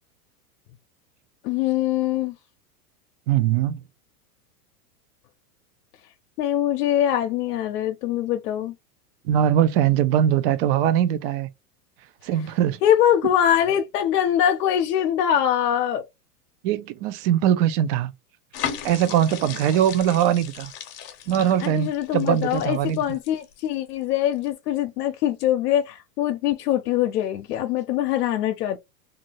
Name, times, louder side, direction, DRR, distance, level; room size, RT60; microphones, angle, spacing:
voice 1, 1.4-2.4 6.4-8.7 12.8-16.1 21.6-28.8, left 10 dB, 80° left, 0.6 m, -23 dB
voice 2, 3.3-3.8 9.2-11.5 12.2-12.8 16.6-18.1 18.8-20.7 21.3-23.0, right 10 dB, 40° right, 0.4 m, -21 dB
sound 1, 18.5-23.9 24.3-24.5, left 9 dB, 45° left, 0.8 m, -36 dB
2.7 x 2.4 x 2.8 m
supercardioid pair, 130°, 47 cm